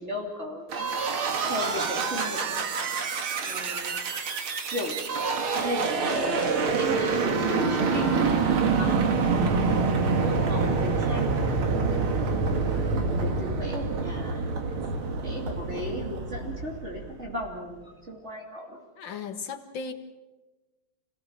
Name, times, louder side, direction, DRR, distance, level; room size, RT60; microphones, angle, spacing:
voice 1, 0.0-4.0 4.7-5.2 5.5-12.4 13.1-18.8 19.0-19.2, equal, 30° right, -1 dB, 3.2 m, -37 dB
sound 1, 0.7-17.3, right 4 dB, 85° right, 2.7 m, -26 dB
voice 2, 19.0-19.9, left 5 dB, 65° left, 5 dB, 2.3 m, -36 dB
27.0 x 17.5 x 7.4 m, 1.2 s
omnidirectional pair, 2.3 m